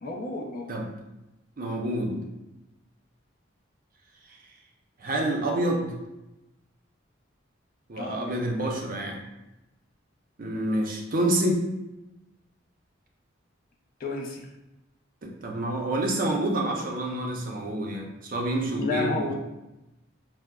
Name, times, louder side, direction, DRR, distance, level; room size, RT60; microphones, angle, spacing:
voice 1, 0.0-0.8 8.0-8.3 14.0-14.5 18.8-19.4, left 3 dB, 45° left, 0 dB, 0.5 m, -31 dB
voice 2, 1.6-2.2 5.0-5.9 7.9-9.2 10.4-11.6 15.2-19.4, right 1 dB, 45° right, 1 dB, 0.5 m, -28 dB
4.6 x 2.0 x 2.2 m, 0.96 s
head